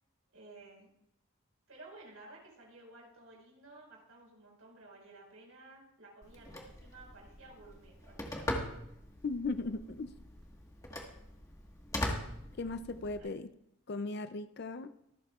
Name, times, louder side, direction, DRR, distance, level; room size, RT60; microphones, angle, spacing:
voice 1, 0.3-0.9 1.7-8.8 13.2-13.3, right 2 dB, 75° right, -2 dB, 5.1 m, -55 dB
Telephone, 6.2-13.2, left 1 dB, 15° left, 1.5 m, -41 dB
voice 2, 9.2-10.1 12.6-13.5 13.9-14.9, left 3 dB, 50° left, 11 dB, 0.4 m, -37 dB
24.5 x 8.4 x 2.4 m, 0.78 s
head